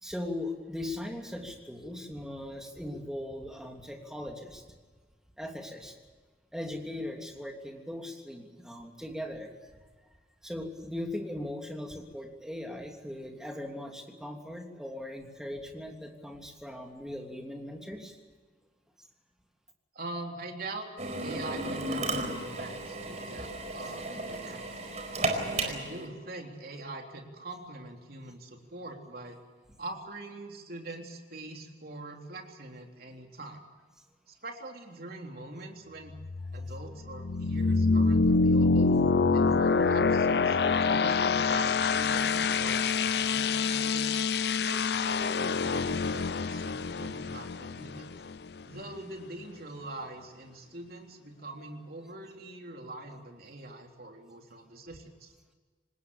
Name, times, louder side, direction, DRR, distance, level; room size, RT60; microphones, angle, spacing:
voice 1, 0.0-4.6 5.4-6.0 6.5-9.5 10.4-18.2 36.6-36.7, left 1 dB, 5° right, 2 dB, 3.1 m, -39 dB
voice 2, 20.0-20.9 21.2-24.9 25.5-29.4 29.8-33.6 34.3-36.1 36.5-38.9 39.3-44.1 44.6-48.1 48.7-55.3, right 2 dB, 60° right, 2 dB, 3.6 m, -43 dB
Drill, 21.0-26.1, right 2 dB, 40° right, 4.5 m, -34 dB
sound 1, 36.1-48.8, left 4 dB, 65° left, 0.6 m, -26 dB
26.5 x 20.0 x 7.1 m, 1.4 s
head